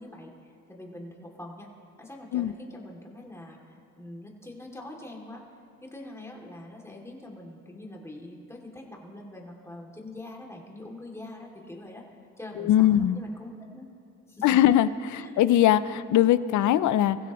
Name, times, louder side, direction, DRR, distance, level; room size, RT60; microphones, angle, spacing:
voice 1, 0.0-1.7 2.0-3.6 4.0-5.4 5.8-12.0 12.4-13.9 14.3-14.6 15.2-15.4, left 1 dB, 10° left, -1 dB, 2.8 m, -44 dB
voice 2, 12.6-13.2 14.4-17.2, left 12 dB, 75° left, 15 dB, 0.6 m, -21 dB
24.0 x 15.5 x 3.1 m, 2.6 s
cardioid pair, 90°, 30 cm